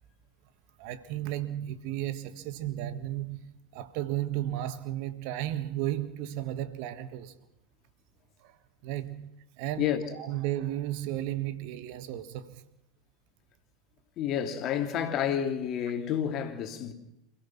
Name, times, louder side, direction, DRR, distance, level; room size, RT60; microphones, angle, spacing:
voice 1, 0.8-7.3 8.4-8.6 8.8-9.9 10.2-12.6, right 13 dB, 55° right, 1.6 m, -34 dB
voice 2, 14.2-16.9, left 9 dB, 45° left, 2.8 m, -29 dB
28.0 x 16.0 x 6.0 m
figure-of-eight pair, 85°, 0 cm